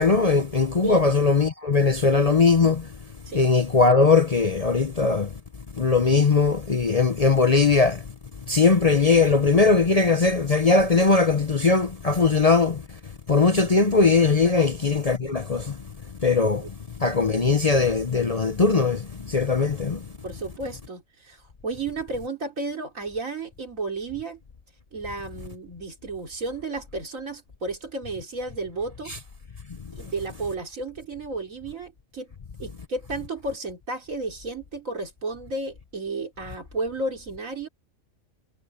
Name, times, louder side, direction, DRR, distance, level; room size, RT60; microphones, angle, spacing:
voice 1, 0.0-2.9 3.3-5.3 5.8-8.0 8.5-12.8 13.3-15.8 16.2-16.7 17.0-20.0 29.1-29.2, left 4 dB, 35° left, 0.7 m, -20 dB
voice 2, 20.2-24.4 24.9-29.1 29.9-32.3 32.6-37.7, right 3 dB, 85° right, 3.5 m, -33 dB
omnidirectional pair, 1.4 m